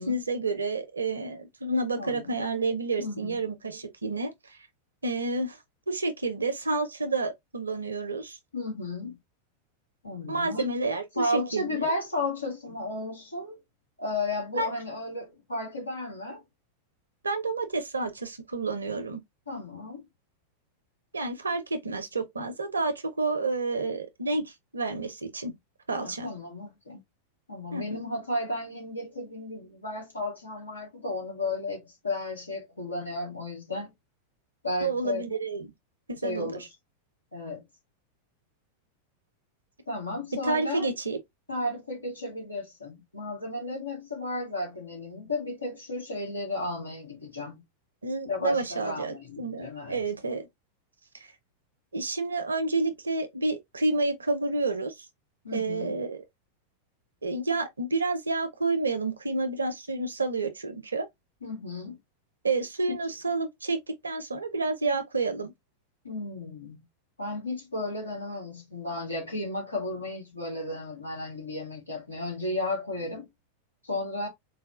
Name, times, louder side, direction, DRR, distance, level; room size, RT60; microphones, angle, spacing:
voice 1, 0.0-4.6 5.0-5.6 5.9-8.4 10.3-11.9 14.5-14.7 17.2-19.2 21.1-25.5 25.9-26.3 27.7-27.8 34.8-35.7 36.1-36.6 40.4-41.2 48.0-50.4 51.9-54.9 55.5-56.2 57.2-61.1 62.4-65.5, right 3 dB, 75° right, 0.7 m, -29 dB
voice 2, 2.0-2.3 3.0-3.4 8.5-9.2 10.0-10.7 11.2-13.6 14.0-16.4 19.5-20.0 25.9-27.0 27.5-33.9 34.6-35.4 36.2-36.7 37.3-37.6 39.9-40.9 41.5-47.6 48.2-50.0 55.4-55.9 61.4-62.0 66.0-66.8 67.2-73.3 73.8-74.3, left 2 dB, 80° left, 1.6 m, -33 dB
4.1 x 2.3 x 2.4 m
figure-of-eight pair, 90°, 0 cm